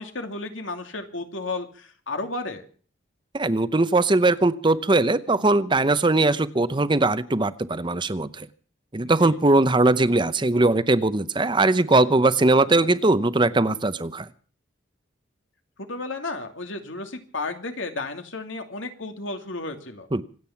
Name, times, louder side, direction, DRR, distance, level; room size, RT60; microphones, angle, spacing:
voice 1, 0.0-2.6 9.2-9.4 15.8-20.1, left 3 dB, 90° left, 5 dB, 2.5 m, -33 dB
voice 2, 3.3-8.5 8.9-14.3 20.1-20.2, right 2 dB, 25° right, 14 dB, 0.7 m, -20 dB
26.0 x 9.0 x 5.8 m, 0.43 s
head